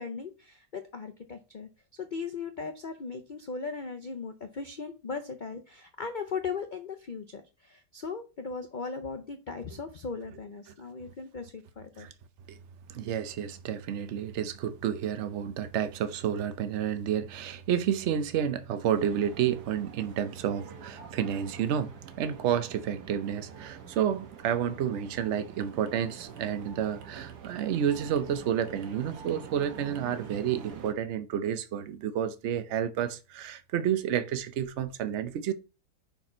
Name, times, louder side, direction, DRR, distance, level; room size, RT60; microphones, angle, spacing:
voice 1, 0.0-12.1, left 5 dB, 75° left, 0.4 m, -38 dB
voice 2, 12.9-21.9 22.2-35.5, right 9 dB, 55° right, 0.8 m, -30 dB
sound 1, 18.9-30.9, right 6 dB, 75° right, 1.6 m, -46 dB
5.9 x 4.5 x 4.3 m
omnidirectional pair, 1.8 m